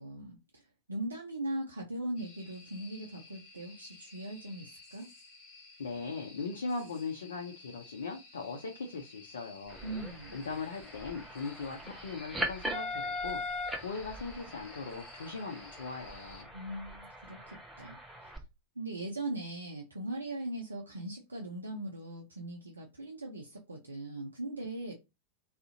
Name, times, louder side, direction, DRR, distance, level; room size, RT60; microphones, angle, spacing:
voice 1, 0.0-5.1 9.8-10.4 16.5-18.0 18.2-18.3 18.8-24.9, right 1 dB, 75° right, 0.4 m, -40 dB
sound 1, 2.2-16.4, left 3 dB, 35° left, 1.1 m, -55 dB
voice 2, 5.8-9.8 10.3-16.5, left 4 dB, 65° left, 0.4 m, -39 dB
sound 2, 9.7-18.4, left 1 dB, 5° right, 0.5 m, -40 dB
2.4 x 2.0 x 2.6 m
figure-of-eight pair, 90°, 0 cm